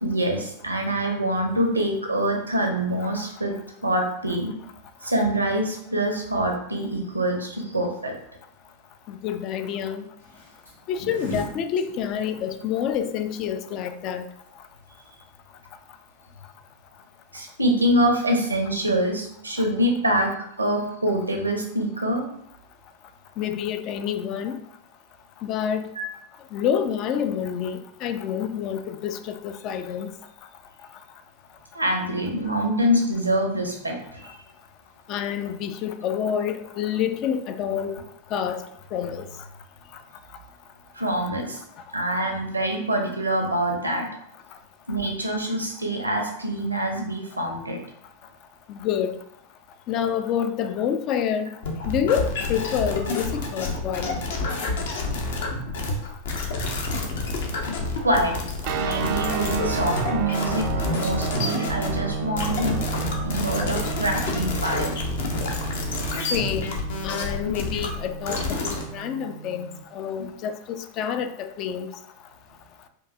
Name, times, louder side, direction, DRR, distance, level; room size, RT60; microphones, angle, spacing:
voice 1, 0.0-3.5 3.8-4.5 5.0-8.1 17.3-22.3 26.0-26.1 31.7-34.4 40.9-41.6 41.9-44.1 44.9-47.8 58.0-58.4 58.8-62.8 63.2-65.0 70.2-70.3, right 1 dB, 85° right, 0.8 m, -25 dB
voice 2, 9.1-10.1 10.9-14.2 23.4-24.6 25.4-25.9 26.5-30.1 35.1-38.0 38.3-38.7 38.9-39.3 48.7-49.2 49.9-51.6 51.9-54.1 66.3-66.7 67.0-71.9, left 8 dB, 40° left, 0.3 m, -28 dB
sound 1, 10.2-15.3, left 1 dB, 85° left, 1.5 m, -40 dB
sound 2, 51.6-68.8, left 3 dB, 60° left, 0.7 m, -29 dB
sound 3, 58.6-69.8, right 7 dB, 45° right, 0.4 m, -32 dB
4.6 x 2.6 x 2.6 m
figure-of-eight pair, 90°, 0 cm